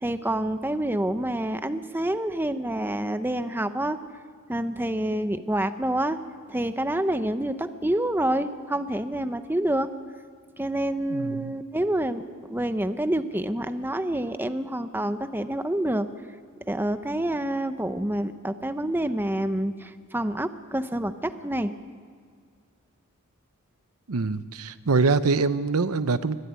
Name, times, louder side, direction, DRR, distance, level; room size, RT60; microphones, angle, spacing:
voice 1, 0.0-4.0 4.5-6.2 6.5-9.9 10.6-16.1 16.7-21.7, right 1 dB, 10° right, 10 dB, 0.8 m, -27 dB
voice 2, 11.1-11.5 24.1-26.4, right 4 dB, 85° right, 13 dB, 0.8 m, -24 dB
24.0 x 12.5 x 9.6 m, 2.1 s
head